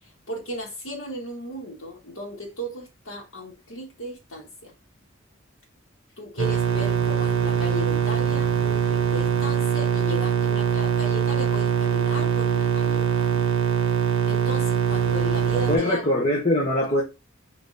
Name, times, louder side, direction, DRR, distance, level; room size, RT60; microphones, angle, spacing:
voice 1, 0.0-4.7 6.2-13.5 14.3-16.1, left 1 dB, 80° left, 1.9 m, -36 dB
sound 1, 6.4-15.8, right 8 dB, 75° right, 0.7 m, -23 dB
voice 2, 15.5-17.0, left 1 dB, 30° left, 1.0 m, -22 dB
4.3 x 3.8 x 2.7 m
head